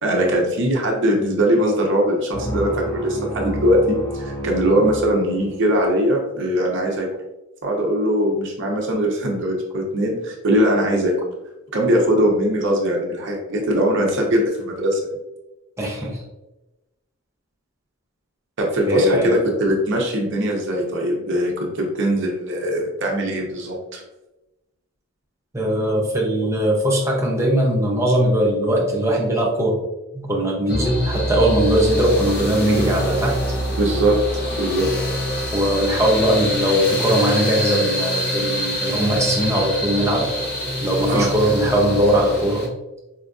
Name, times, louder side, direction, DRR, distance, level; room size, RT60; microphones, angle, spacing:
voice 1, 0.0-7.1 7.6-11.1 11.7-15.0 18.6-24.0 33.8-34.9 41.1-41.3, equal, 55° right, 0 dB, 0.6 m, -21 dB
sound 1, 2.3-5.9, right 2 dB, 15° left, 1.1 m, -30 dB
voice 2, 15.8-16.2 18.9-19.4 25.5-29.8 30.1-33.4 35.5-40.5 40.8-42.7, equal, 10° right, -2 dB, 0.6 m, -20 dB
sound 2, 30.7-42.7, equal, 45° left, 0.6 m, -25 dB
4.3 x 2.5 x 2.3 m, 1.0 s
head